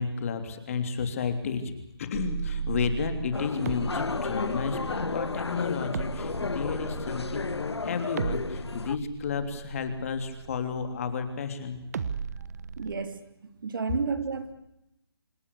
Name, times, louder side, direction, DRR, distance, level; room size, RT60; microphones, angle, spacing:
voice 1, 0.0-1.7 2.0-11.8, left 5 dB, 35° left, 8 dB, 3.3 m, -32 dB
sound 1, 2.1-11.4 11.9-13.0, right 7 dB, 40° right, 1.3 m, -37 dB
sound 2, 3.3-9.0, left 4 dB, 85° left, 1.3 m, -33 dB
voice 2, 12.8-13.2 13.6-14.5, right 5 dB, 55° right, 9 dB, 3.4 m, -31 dB
27.0 x 19.5 x 8.6 m, 0.88 s
hypercardioid pair, 165°, 13 cm